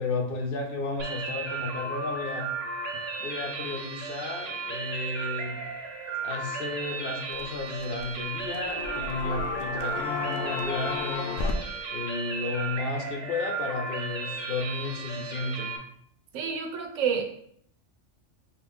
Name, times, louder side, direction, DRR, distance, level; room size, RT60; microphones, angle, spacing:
voice 1, 0.0-2.5 3.2-5.6 6.2-11.3 11.9-15.8, left 3 dB, 60° left, 1 dB, 0.7 m, -33 dB
sound 1, 1.0-15.8, right 4 dB, 55° right, 0.9 m, -35 dB
sound 2, 7.3-8.1 8.4-11.5, left 5 dB, 85° left, 0.9 m, -33 dB
voice 2, 16.3-17.2, right 7 dB, 80° right, 4 dB, 1.0 m, -28 dB
4.1 x 2.4 x 3.5 m, 0.66 s
omnidirectional pair, 1.3 m